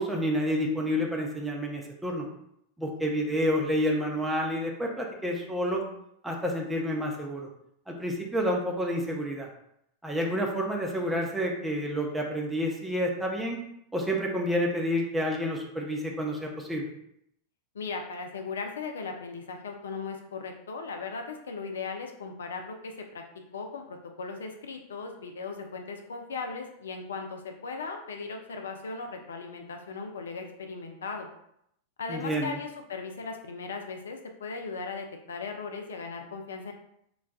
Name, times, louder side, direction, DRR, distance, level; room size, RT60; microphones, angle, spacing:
voice 1, 0.0-2.3 2.8-5.8 6.2-7.5 7.9-9.5 10.0-13.6 13.9-16.8 32.1-32.5, equal, 5° right, 0 dB, 0.6 m, -29 dB
voice 2, 17.7-23.2 23.5-31.3 32.0-36.7, left 4 dB, 65° left, 4 dB, 0.4 m, -37 dB
4.0 x 2.2 x 2.3 m, 0.75 s
figure-of-eight pair, 90°, 0 cm